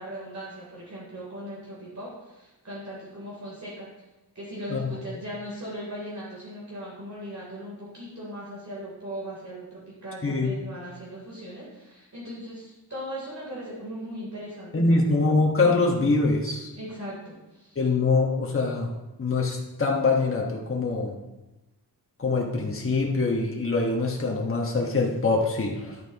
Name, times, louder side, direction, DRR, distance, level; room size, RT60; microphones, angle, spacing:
voice 1, 0.0-3.9 4.3-14.7 15.0-15.1 16.8-17.8, equal, 45° right, -7 dB, 3.4 m, -38 dB
voice 2, 10.2-10.5 14.7-16.7 17.7-18.9 19.2-21.2 22.2-26.0, left 3 dB, 35° left, -1 dB, 1.3 m, -24 dB
11.0 x 8.8 x 3.0 m, 1.0 s
wide cardioid pair, 120°, 40 cm